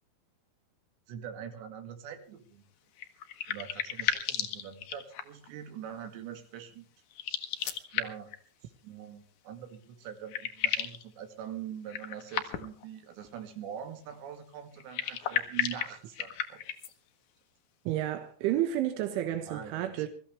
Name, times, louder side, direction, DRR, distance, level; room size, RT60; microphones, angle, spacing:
voice 1, 1.1-2.7 3.5-6.9 7.9-8.3 8.6-16.6 19.5-20.1, right 9 dB, 70° right, 4.3 m, -43 dB
sound 1, 3.0-5.5 7.1-8.4 9.7-9.8 10.1-11.0 11.9-12.8 14.8-16.9, left 10 dB, 70° left, 1.9 m, -33 dB
voice 2, 17.9-20.1, right 12 dB, 85° right, 3.7 m, -30 dB
23.5 x 14.5 x 3.3 m
omnidirectional pair, 5.4 m